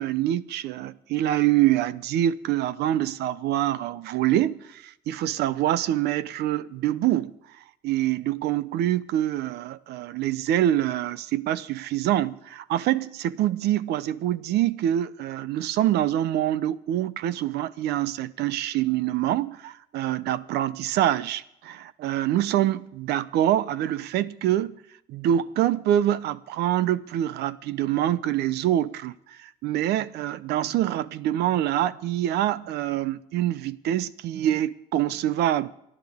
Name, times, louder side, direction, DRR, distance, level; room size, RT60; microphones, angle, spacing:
voice 1, 0.0-7.3 7.8-24.8 25.1-35.7, right 12 dB, 80° right, 0.7 m, -25 dB
28.0 x 11.0 x 3.6 m
cardioid pair, 110°, 17 cm